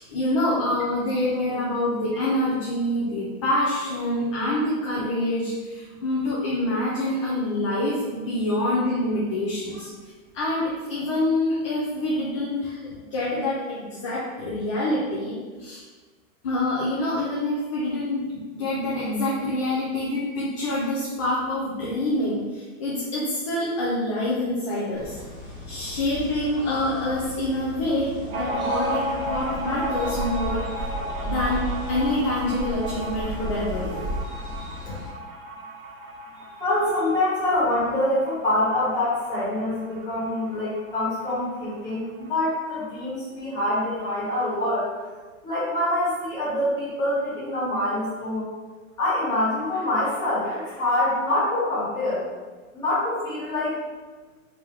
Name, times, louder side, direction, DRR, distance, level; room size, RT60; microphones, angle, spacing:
voice 1, 0.0-9.9 10.3-15.8 16.4-25.2 25.7-30.9 31.2-34.1, left 1 dB, 25° left, -6 dB, 0.4 m, -26 dB
sound 1, 24.9-35.1, left 1 dB, 10° right, 1.1 m, -34 dB
sound 2, 28.3-41.4 41.7-41.8 42.1-42.9, right 1 dB, 80° right, 0.8 m, -34 dB
voice 2, 36.6-44.9 45.4-48.5 49.0-52.3 52.7-53.7, left 1 dB, 10° left, -10 dB, 1.3 m, -25 dB
3.6 x 3.4 x 3.0 m, 1.3 s
hypercardioid pair, 155°, 42 cm